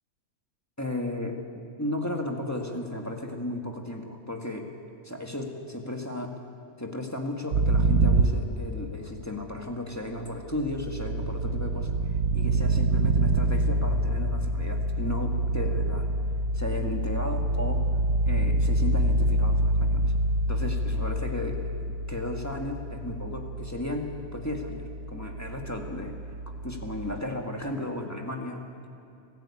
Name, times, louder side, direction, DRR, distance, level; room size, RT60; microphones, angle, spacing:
voice 1, 0.8-1.4 1.8-4.7 5.0-6.3 6.8-16.1 16.5-17.9 18.2-20.1 20.5-26.2 26.6-28.6, left 1 dB, 10° left, 2 dB, 1.9 m, -34 dB
sound 1, 7.5-9.3 10.3-27.2, right 2 dB, 80° right, 1.2 m, -27 dB
26.5 x 15.0 x 8.6 m, 2.5 s
omnidirectional pair, 1.4 m